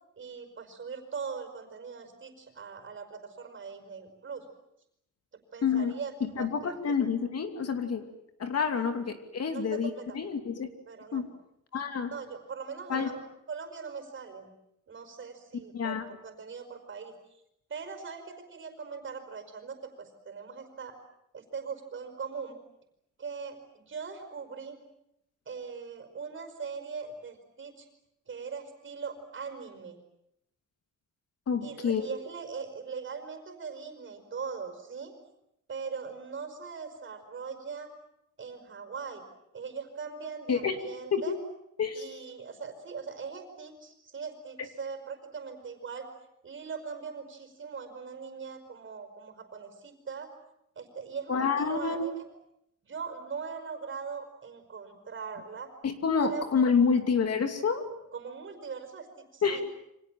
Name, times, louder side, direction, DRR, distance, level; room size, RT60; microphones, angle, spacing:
voice 1, 0.2-4.5 5.5-6.8 8.7-8.9 9.5-10.2 10.9-11.3 12.1-13.2 13.5-14.5 14.9-17.2 17.7-21.0 21.3-22.6 23.2-24.8 25.5-27.9 28.3-30.0 31.6-35.1 35.7-37.9 38.4-39.2 39.5-41.4 41.9-46.1 46.4-50.3 50.8-52.2 52.8-55.7 56.2-56.5 58.1-59.6, right 5 dB, 40° right, 7 dB, 5.2 m, -40 dB
voice 2, 5.6-5.9 6.2-8.0 8.4-10.7 11.1-11.3 11.7-12.1 12.9-13.1 15.7-16.0 31.5-32.1 40.5-40.8 41.1-41.4 41.8-42.0 51.3-52.1 55.8-57.8 59.4-59.6, left 6 dB, 50° left, 7 dB, 2.8 m, -28 dB
29.0 x 25.5 x 7.6 m, 0.80 s
wide cardioid pair, 160°, 31 cm